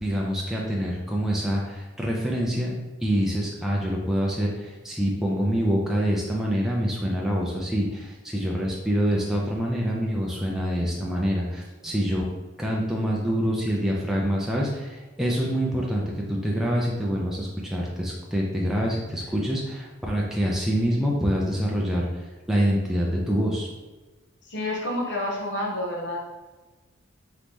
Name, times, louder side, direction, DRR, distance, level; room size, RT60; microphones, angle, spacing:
voice 1, 0.0-2.7 3.0-12.3 12.6-22.1 22.5-23.7, equal, ahead, -3 dB, 0.5 m, -26 dB
voice 2, 24.4-26.3, left 1 dB, 55° left, -2 dB, 1.0 m, -29 dB
3.9 x 3.1 x 3.6 m, 1.2 s
head